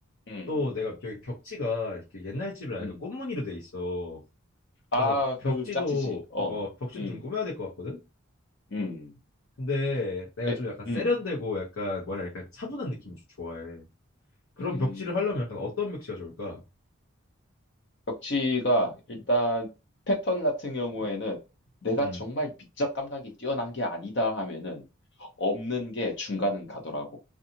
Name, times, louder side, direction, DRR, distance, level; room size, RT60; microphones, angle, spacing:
voice 1, 0.5-4.2 5.0-5.1 5.4-6.2 6.5-8.0 9.6-13.8 14.6-16.6 22.0-22.2, left 3 dB, 85° left, -6 dB, 0.9 m, -32 dB
voice 2, 4.9-5.6 6.0-6.6 7.0-7.2 8.7-9.1 10.5-10.6 10.9-11.0 14.6-15.0 18.2-19.7 20.1-21.4 21.8-22.5 22.8-24.8 25.2-27.2, left 1 dB, 55° left, 2 dB, 0.7 m, -29 dB
2.7 x 2.3 x 2.7 m, 0.27 s
head